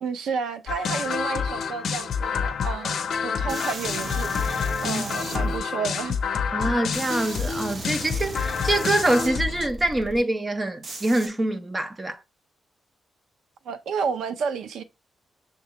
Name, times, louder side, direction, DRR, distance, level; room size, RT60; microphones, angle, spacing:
voice 1, 0.0-6.2 13.6-14.8, right 6 dB, 90° right, 0.6 m, -31 dB
sound 1, 0.7-9.7, left 6 dB, 65° left, 0.6 m, -28 dB
sound 2, 3.5-5.6 6.9-10.2 10.8-11.3, right 2 dB, 45° right, 0.9 m, -36 dB
voice 2, 6.5-12.2, right 1 dB, 20° right, 0.6 m, -25 dB
6.5 x 2.2 x 2.9 m
wide cardioid pair, 140°, 0 cm